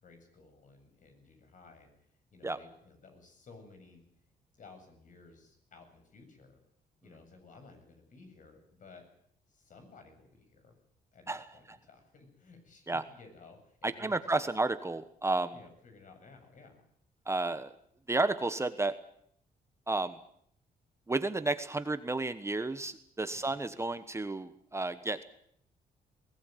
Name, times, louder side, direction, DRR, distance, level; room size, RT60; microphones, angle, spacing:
voice 1, 0.0-1.9 2.3-4.0 4.6-6.6 7.0-9.0 9.5-10.7 11.1-14.4 15.5-16.8 23.3-23.6, left 4 dB, 55° left, 6 dB, 7.8 m, -56 dB
voice 2, 13.8-15.5 17.3-17.7 18.1-18.9 19.9-20.2 21.1-25.2, right 2 dB, 15° right, 11 dB, 1.3 m, -32 dB
22.0 x 18.0 x 9.3 m, 0.68 s
cardioid pair, 90°, 16 cm